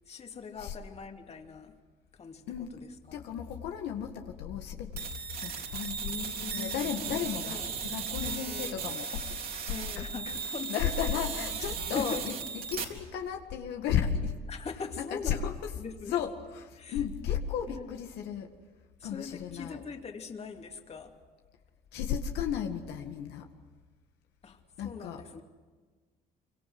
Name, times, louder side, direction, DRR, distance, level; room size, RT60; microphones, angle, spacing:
voice 1, 0.1-1.8 2.1-2.4 2.7-3.2 6.0-7.8 8.2-8.9 9.7-11.1 11.6-12.2 14.5-15.4 15.8-16.2 16.8-17.0 17.7-17.9 19.0-21.2 24.4-25.4, left 5 dB, 40° left, 2.7 m, -42 dB
voice 2, 3.1-5.1 5.4-6.2 6.5-10.0 10.7-12.4 12.7-14.3 15.0-15.7 16.1-18.5 19.0-19.8 21.9-23.5 24.8-25.2, left 8 dB, 85° left, 2.0 m, -34 dB
sound 1, 5.0-12.8, right 6 dB, 60° right, 3.9 m, -36 dB
26.0 x 24.0 x 7.9 m
cardioid pair, 110°, 17 cm